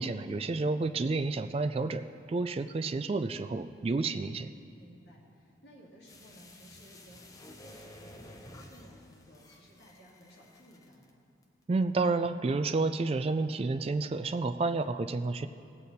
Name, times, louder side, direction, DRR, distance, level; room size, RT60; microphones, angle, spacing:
voice 1, 0.0-4.5 11.7-15.5, right 3 dB, 30° right, 10 dB, 0.3 m, -30 dB
voice 2, 4.7-11.2, equal, 60° left, -5 dB, 2.7 m, -56 dB
sound 1, 6.0-11.1 11.4-11.5, left 1 dB, 20° left, 0.8 m, -52 dB
18.5 x 8.4 x 4.1 m, 2.6 s
head